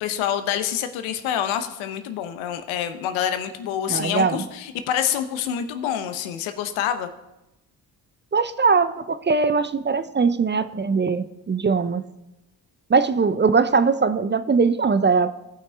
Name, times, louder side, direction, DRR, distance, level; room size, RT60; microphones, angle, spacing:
voice 1, 0.0-7.1, left 9 dB, 80° left, 9 dB, 0.8 m, -27 dB
voice 2, 3.9-4.4 8.3-12.0 12.9-15.3, right 4 dB, 25° right, 12 dB, 0.5 m, -21 dB
15.0 x 5.6 x 3.4 m, 0.94 s
hypercardioid pair, 45°, 47 cm